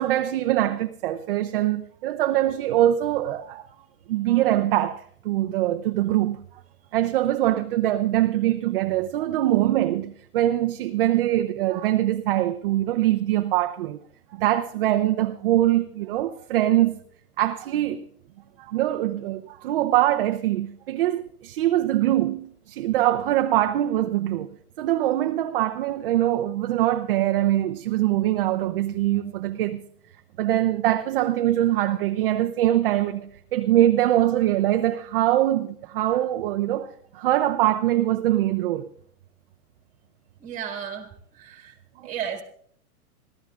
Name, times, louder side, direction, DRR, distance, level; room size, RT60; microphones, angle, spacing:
voice 1, 0.0-3.7 4.1-6.4 6.9-14.0 14.3-17.0 17.4-18.1 18.6-24.5 24.8-29.8 30.4-38.9 42.0-42.1, right 13 dB, 40° right, 0.5 m, -23 dB
voice 2, 40.4-41.1 41.4-41.7 42.0-42.4, right 8 dB, 15° right, 1.9 m, -33 dB
26.0 x 13.5 x 2.4 m
hypercardioid pair, 150°, 46 cm